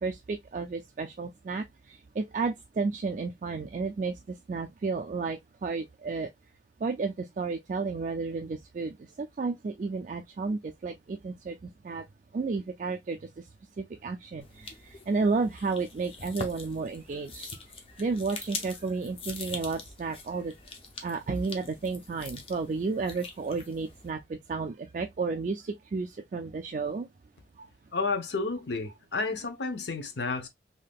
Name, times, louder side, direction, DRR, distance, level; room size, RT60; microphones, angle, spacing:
voice 1, 0.0-4.2 4.5-6.3 6.8-12.0 12.3-13.5 13.8-17.5 18.0-20.5 21.0-27.1 27.6-27.7, right 4 dB, 45° right, 0.3 m, -32 dB
sound 1, 14.4-24.1, left 4 dB, 30° left, 0.6 m, -43 dB
voice 2, 27.9-30.5, left 4 dB, 80° left, 0.7 m, -31 dB
3.4 x 2.7 x 2.2 m
head